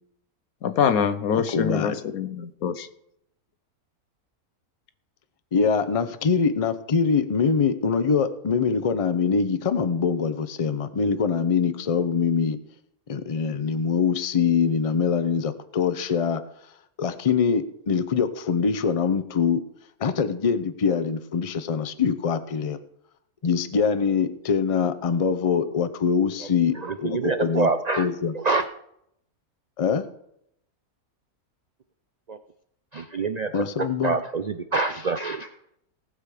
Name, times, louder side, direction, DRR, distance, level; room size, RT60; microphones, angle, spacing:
voice 1, 0.6-2.9, left 7 dB, 75° left, 11 dB, 1.3 m, -24 dB
voice 2, 1.3-2.0 5.5-12.6 13.1-16.4 17.0-19.6 20.0-22.8 23.4-27.7 28.0-28.3 29.8-30.1 33.5-34.2, left 6 dB, 35° left, 11 dB, 0.5 m, -23 dB
voice 3, 26.7-28.7 32.3-32.4 32.9-35.6, right 4 dB, 80° right, 9 dB, 0.3 m, -26 dB
18.5 x 6.9 x 4.9 m, 0.75 s
omnidirectional pair, 1.6 m